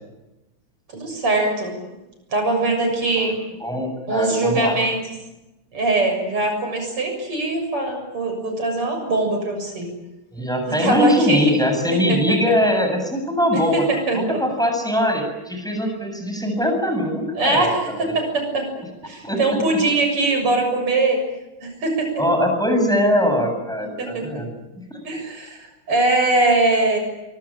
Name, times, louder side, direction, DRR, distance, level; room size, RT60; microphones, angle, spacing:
voice 1, 0.9-1.8 2.3-3.3 4.1-5.0 5.7-9.9 10.8-11.6 11.9-12.4 13.5-14.4 17.3-18.7 19.0-21.2 21.6-22.1 24.0-24.3 25.0-27.0, right 2 dB, 90° right, 4 dB, 8.0 m, -22 dB
voice 2, 3.6-4.8 10.3-13.8 14.1-17.9 19.2-19.4 22.2-24.5 24.9-25.0, left 1 dB, ahead, 4 dB, 7.7 m, -21 dB
25.0 x 24.5 x 8.9 m, 0.99 s
omnidirectional pair, 2.4 m